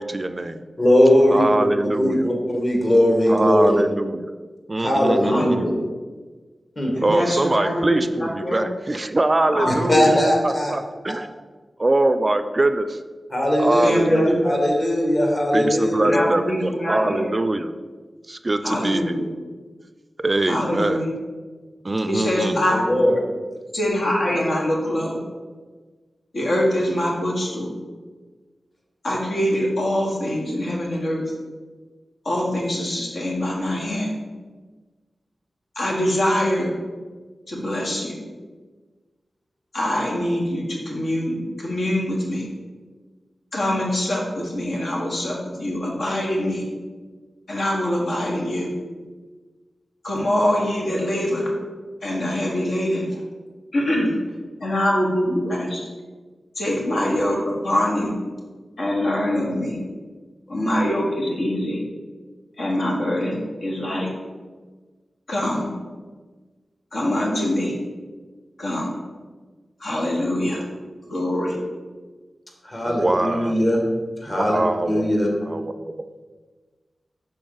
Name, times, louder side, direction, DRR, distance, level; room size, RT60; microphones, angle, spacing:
voice 1, 0.0-0.6 1.3-2.3 3.3-4.3 4.7-5.7 7.0-10.1 10.4-11.3 11.8-13.0 13.6-14.4 15.5-17.7 18.3-19.2 20.2-21.0 21.8-22.7 72.8-73.6 74.3-75.2 75.5-75.7, right 2 dB, 40° right, 10 dB, 0.3 m, -23 dB
voice 2, 0.8-1.6 1.9-3.8 4.8-5.7 6.8-6.9 9.7-10.7 13.3-16.2 22.7-23.2 72.7-73.8 74.2-74.6 74.9-75.3, equal, 40° left, 0 dB, 1.7 m, -19 dB
voice 3, 6.9-8.6 9.5-10.2 13.8-14.6 16.0-17.3 18.6-19.2 20.5-21.1 22.0-22.8 23.7-25.2 26.3-27.7 29.0-31.2 32.2-34.1 35.7-36.7 37.5-38.2 39.7-42.5 43.5-46.6 47.5-48.7 50.0-51.5 52.0-53.2 53.7-54.1 54.6-55.9 56.6-58.1 58.8-59.8 60.5-61.8 62.6-64.1 65.3-65.7 66.9-67.7 68.6-68.9 69.8-70.6 71.1-71.6, left 1 dB, 75° left, -2 dB, 1.3 m, -24 dB
6.0 x 4.1 x 3.9 m, 1.4 s
cardioid pair, 45°, 0 cm